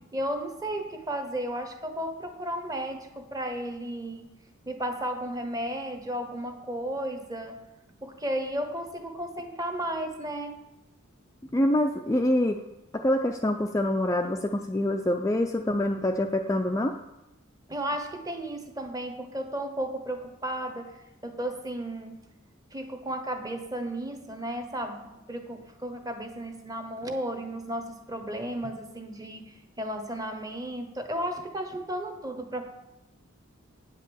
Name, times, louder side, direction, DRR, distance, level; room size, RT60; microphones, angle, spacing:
voice 1, 0.1-4.3 4.7-7.6 8.0-10.6 17.7-21.0 21.2-22.2 22.7-32.7, right 1 dB, 20° right, 6 dB, 1.0 m, -34 dB
voice 2, 11.5-12.6 12.9-17.0, left 1 dB, 15° left, 4 dB, 0.4 m, -25 dB
9.0 x 5.2 x 7.6 m, 0.95 s
head